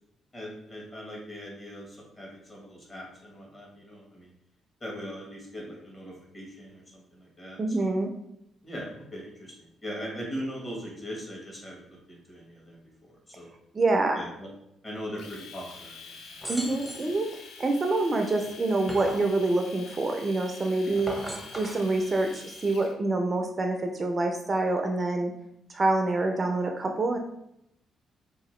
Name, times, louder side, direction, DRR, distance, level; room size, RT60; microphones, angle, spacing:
voice 1, 0.3-4.3 4.8-7.8 8.6-12.8 13.3-13.5 14.2-14.5 14.8-16.1 21.2-21.4, equal, 30° left, -3 dB, 1.2 m, -40 dB
voice 2, 7.6-8.1 13.7-14.2 16.5-17.3 17.6-21.2 21.5-25.3 25.7-27.2, right 2 dB, 30° right, 3 dB, 0.3 m, -26 dB
Domestic sounds home sounds, 15.2-22.9, left 4 dB, 75° left, 0.4 m, -47 dB
sound 1, 16.4-17.1 18.4-19.3 20.9-21.8, equal, 10° left, 0.7 m, -37 dB
2.8 x 2.4 x 3.1 m, 0.79 s
cardioid pair, 90°, 0 cm